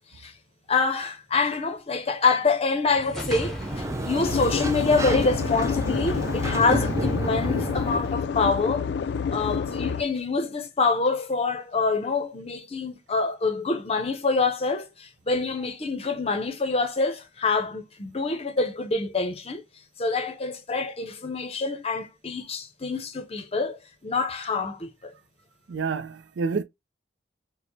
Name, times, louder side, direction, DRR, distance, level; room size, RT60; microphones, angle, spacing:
voice 1, 0.7-8.9 9.3-19.6 20.0-25.1, left 4 dB, 35° left, 0.6 m, -26 dB
Sliding door, 2.9-8.2, right 1 dB, 15° right, 0.4 m, -30 dB
sound 1, 3.0-5.9, left 1 dB, ahead, 0.9 m, -41 dB
sound 2, 4.2-10.0, left 6 dB, 65° left, 0.3 m, -28 dB
voice 2, 25.7-26.6, right 5 dB, 85° right, 0.5 m, -28 dB
4.4 x 2.1 x 2.7 m
head